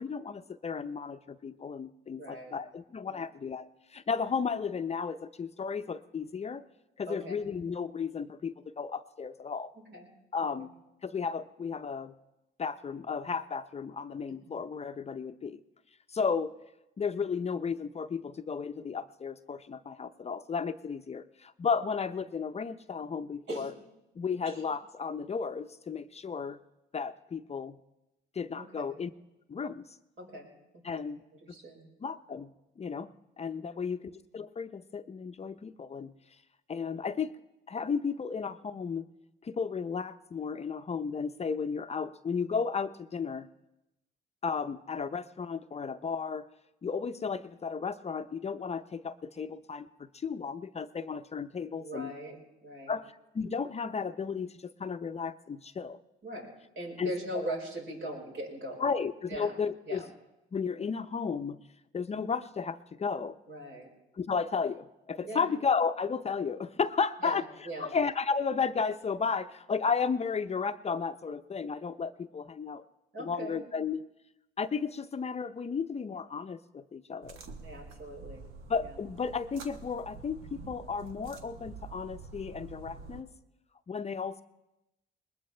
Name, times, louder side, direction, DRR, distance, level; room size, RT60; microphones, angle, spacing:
voice 1, 0.0-6.6 7.0-9.7 10.3-10.7 11.0-12.1 12.6-15.6 16.1-16.5 17.0-23.7 24.2-26.6 26.9-27.8 28.3-29.1 29.5-29.8 30.8-31.2 32.0-33.1 33.4-36.1 36.7-37.3 37.7-39.0 39.4-43.5 44.4-46.5 46.8-52.1 52.9-53.0 53.3-56.0 57.0-57.5 58.8-60.0 60.5-61.6 61.9-63.4 64.2-67.4 67.8-72.8 73.2-74.1 74.6-77.4 78.7-83.3 83.9-84.4, left 5 dB, 35° left, 10 dB, 0.6 m, -34 dB
voice 2, 2.2-2.5 3.1-3.3 7.0-7.4 9.7-10.1 10.4-10.7 23.5-23.7 24.4-24.6 28.5-28.9 30.2-30.5 30.7-31.0 31.5-31.9 33.6-33.7 51.8-52.4 52.6-53.0 56.2-58.9 59.3-59.5 59.9-60.0 63.5-63.9 65.2-65.5 67.2-67.9 73.1-73.6 77.6-78.4 78.8-79.0, right 1 dB, 65° right, -1 dB, 5.0 m, -40 dB
sound 1, 77.2-83.2, right 4 dB, 85° right, 1.4 m, -47 dB
20.5 x 20.5 x 3.3 m, 0.92 s
cardioid pair, 90°, 20 cm